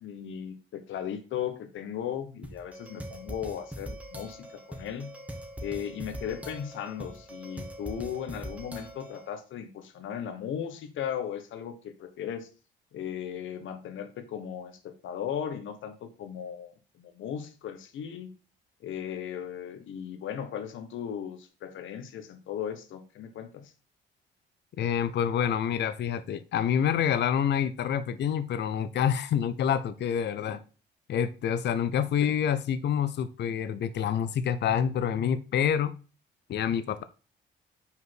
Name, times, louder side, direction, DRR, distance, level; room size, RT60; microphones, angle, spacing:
voice 1, 0.0-5.1 5.6-12.5 12.9-18.3 18.8-23.7 30.4-30.6 32.2-32.4, left 9 dB, 75° left, 9 dB, 1.2 m, -37 dB
sound 1, 2.4-9.3, equal, 5° right, 1.7 m, -42 dB
voice 2, 24.8-30.6 31.1-35.9 36.5-37.0, left 8 dB, 60° left, 13 dB, 0.6 m, -27 dB
5.5 x 4.7 x 6.1 m, 0.35 s
cardioid pair, 90°, 20 cm